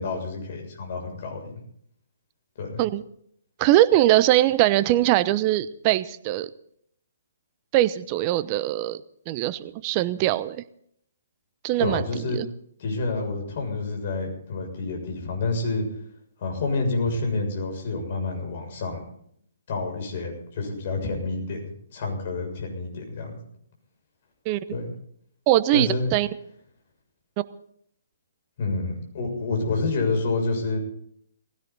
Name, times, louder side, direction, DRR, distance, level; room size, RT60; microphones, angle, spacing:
voice 1, 0.0-1.5 2.6-2.8 11.8-12.4 12.8-15.9 16.4-19.0 19.7-23.4 24.7-24.9 25.7-26.1 28.6-30.8, left 3 dB, 50° left, 2 dB, 7.1 m, -28 dB
voice 2, 3.6-6.5 7.7-9.0 9.3-10.6 11.6-12.1 12.3-12.5 24.5-24.6 25.5-26.3, right 14 dB, 30° right, 14 dB, 0.9 m, -21 dB
19.5 x 16.5 x 4.1 m, 0.68 s
figure-of-eight pair, 135°, 0 cm